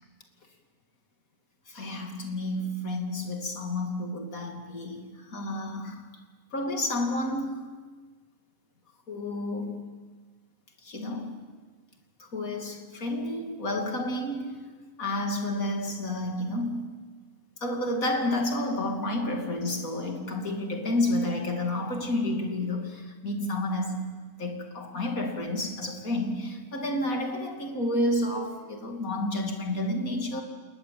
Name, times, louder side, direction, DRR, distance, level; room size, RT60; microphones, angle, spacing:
voice 1, 1.7-6.1 6.5-7.7 9.1-9.9 10.8-11.5 12.2-14.7 15.0-17.0 17.6-30.4, left 1 dB, 65° left, 3.2 m, -30 dB
29.5 x 19.0 x 7.8 m
omnidirectional pair, 1.6 m